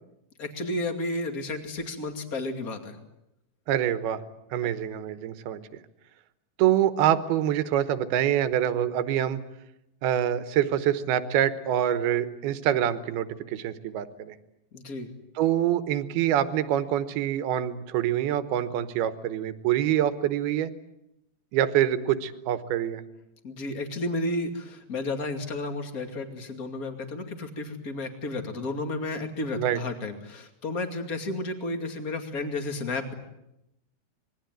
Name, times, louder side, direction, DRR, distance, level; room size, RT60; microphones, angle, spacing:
voice 1, 0.4-3.0 4.6-4.7 14.7-15.1 23.4-33.1, left 2 dB, 25° left, 6 dB, 2.2 m, -32 dB
voice 2, 3.7-4.2 4.5-5.6 6.6-9.4 10.0-14.4 15.4-20.7 21.5-23.0 29.6-29.8, right 11 dB, 75° right, 12 dB, 3.1 m, -25 dB
26.0 x 21.0 x 9.3 m, 0.84 s
omnidirectional pair, 4.5 m